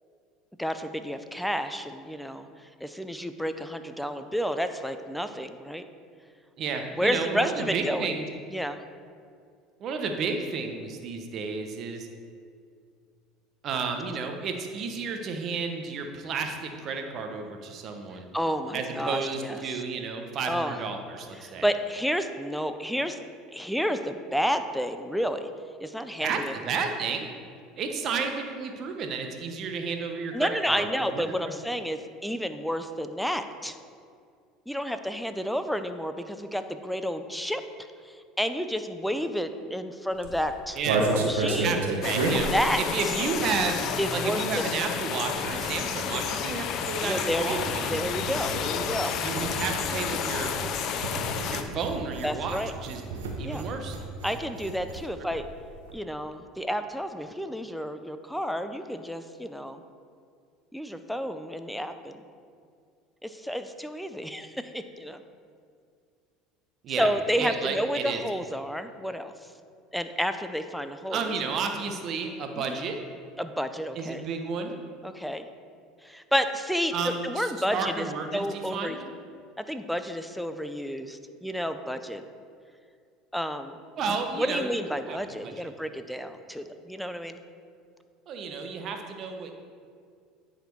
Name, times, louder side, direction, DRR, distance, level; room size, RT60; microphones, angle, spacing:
voice 1, 0.6-2.5 2.8-5.8 6.9-8.2 8.5-8.8 18.3-19.6 20.5-20.8 21.4-23.2 23.5-25.5 25.8-26.6 30.3-33.8 34.7-37.6 38.0-41.8 42.5-42.8 44.0-44.7 47.0-47.6 47.9-49.2 52.2-52.7 53.4-53.7 54.2-55.5 55.9-59.8 60.7-62.2 63.2-65.2 67.0-69.3 69.9-71.3 72.5-72.8 73.4-74.2 75.0-75.5 76.0-78.1 78.3-79.0 79.6-82.2 83.3-83.8 84.4-87.4, equal, ahead, 9 dB, 0.5 m, -30 dB
voice 2, 6.6-8.3 9.8-12.1 13.6-18.3 18.7-21.7 26.2-27.3 27.8-31.5 40.8-41.0 41.6-42.5 42.8-43.8 44.1-48.1 49.2-50.5 51.3-53.0 53.4-54.0 66.8-67.1 67.4-68.2 71.1-73.0 73.9-74.7 76.9-79.1 84.0-85.7 88.3-89.5, right 5 dB, 50° right, 4 dB, 1.0 m, -32 dB
sound 1, 40.1-43.9 44.1-55.0 55.3-55.4 55.6-55.9, right 2 dB, 85° right, 1.0 m, -32 dB
sound 2, 42.0-51.6, left 7 dB, 55° left, 0.6 m, -31 dB
9.5 x 4.3 x 4.6 m, 2.2 s
supercardioid pair, 90°, 0 cm